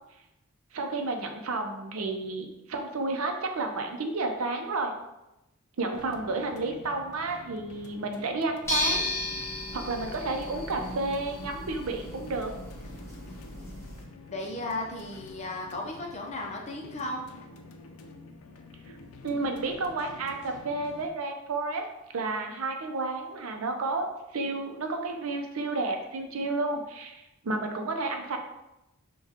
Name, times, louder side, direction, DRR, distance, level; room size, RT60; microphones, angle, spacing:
voice 1, 0.7-4.9 5.8-9.0 9.4-9.5 9.7-12.5 19.2-21.8 22.1-28.4, right 3 dB, 75° right, 4 dB, 0.6 m, -31 dB
sound 1, 5.9-21.1, left 3 dB, 80° left, 0.5 m, -49 dB
sound 2, 8.6-14.0, left 1 dB, 15° left, 0.9 m, -34 dB
voice 2, 14.3-17.2, left 2 dB, 30° left, 0 dB, 0.6 m, -35 dB
5.7 x 2.3 x 2.8 m, 0.92 s
head